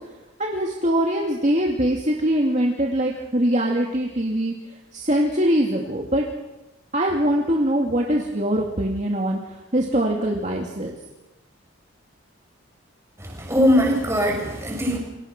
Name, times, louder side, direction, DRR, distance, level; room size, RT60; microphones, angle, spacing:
voice 1, 0.4-4.5 4.9-6.3 6.9-10.9, right 1 dB, 35° right, 0 dB, 2.5 m, -22 dB
voice 2, 13.2-15.0, equal, 10° right, 0 dB, 6.5 m, -21 dB
29.0 x 25.5 x 6.1 m, 1.0 s
head